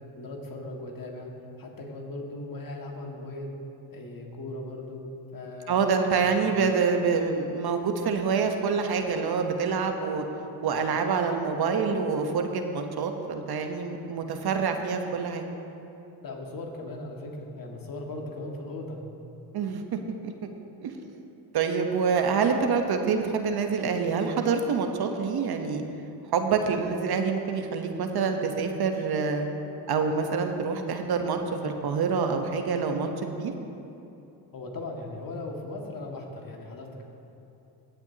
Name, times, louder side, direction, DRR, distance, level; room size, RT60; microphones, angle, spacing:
voice 1, 0.1-1.3 1.6-3.6 3.9-5.0 5.3-5.8 6.1-6.2 16.2-19.0 34.5-37.0, left 2 dB, 45° left, 0 dB, 2.0 m, -38 dB
voice 2, 5.7-10.2 10.6-15.5 19.5-20.5 20.8-21.0 21.5-25.8 26.3-29.5 29.9-33.5, right 5 dB, 50° right, 5 dB, 1.1 m, -26 dB
17.5 x 8.0 x 2.9 m, 2.9 s
supercardioid pair, 65°, 49 cm